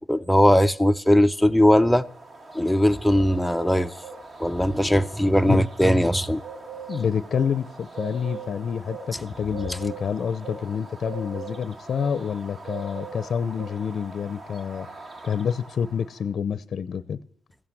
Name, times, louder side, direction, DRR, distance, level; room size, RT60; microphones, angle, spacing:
voice 1, 0.1-2.0 2.5-3.9 4.4-6.4, equal, ahead, 0.6 m, -19 dB
Bird, 1.5-16.2, right 4 dB, 40° right, 1.9 m, -41 dB
voice 2, 6.9-14.9 15.2-17.2, left 7 dB, 55° left, 0.7 m, -28 dB
15.5 x 8.7 x 7.8 m
cardioid pair, 90°, 0 cm